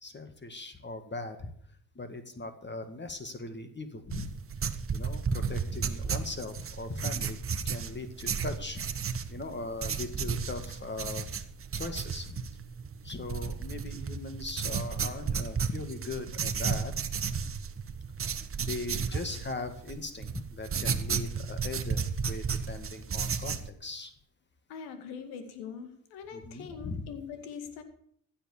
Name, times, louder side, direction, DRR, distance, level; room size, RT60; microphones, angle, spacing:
voice 1, 0.0-1.5 2.0-4.3 4.9-7.4 7.6-9.0 9.3-11.3 11.8-12.4 13.0-16.9 18.6-24.1 26.3-27.0, left 3 dB, 30° left, 8 dB, 2.0 m, -39 dB
sound 1, 4.1-23.7, right 6 dB, 35° right, 1.3 m, -33 dB
voice 2, 24.7-27.8, left 6 dB, 80° left, 8 dB, 2.2 m, -42 dB
15.5 x 7.5 x 7.2 m, 0.66 s
hypercardioid pair, 60°, 37 cm